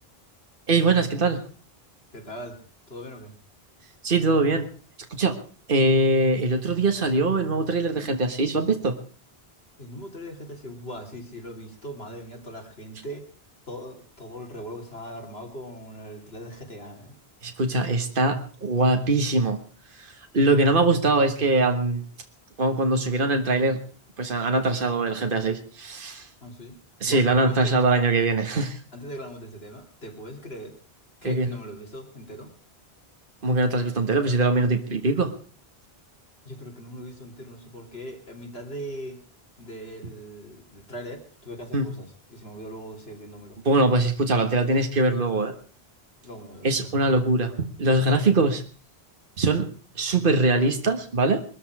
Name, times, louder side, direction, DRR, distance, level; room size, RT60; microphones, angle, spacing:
voice 1, 0.7-1.4 4.0-4.7 5.1-5.4 5.7-9.0 17.4-19.6 20.0-22.0 22.6-23.8 24.2-26.3 27.0-28.8 31.2-31.5 33.4-35.3 41.7-41.9 43.7-45.5 46.6-48.6 49.4-49.7 50.0-51.4, right 2 dB, 55° right, 5 dB, 1.8 m, -22 dB
voice 2, 2.1-2.6 2.9-3.3 9.8-13.3 13.7-17.2 26.4-26.7 27.1-27.8 28.9-30.8 31.2-32.5 36.4-39.2 39.6-43.6 46.2-46.9, equal, 75° left, 0 dB, 3.6 m, -40 dB
21.5 x 14.0 x 4.8 m, 0.39 s
omnidirectional pair, 1.1 m